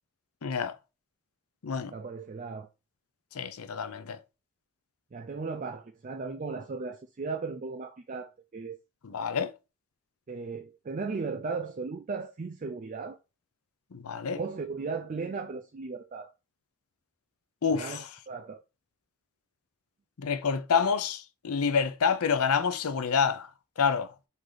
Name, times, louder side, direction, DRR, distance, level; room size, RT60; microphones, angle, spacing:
voice 1, 0.4-0.7 1.6-1.9 3.4-4.2 9.0-9.5 13.9-14.4 17.6-18.0 20.2-23.5 23.8-24.1, left 6 dB, 75° left, 0.6 m, -28 dB
voice 2, 1.9-2.7 5.1-8.8 10.3-13.2 14.3-16.3 17.7-18.6, right 4 dB, 35° right, 0.3 m, -36 dB
4.8 x 2.7 x 3.9 m
head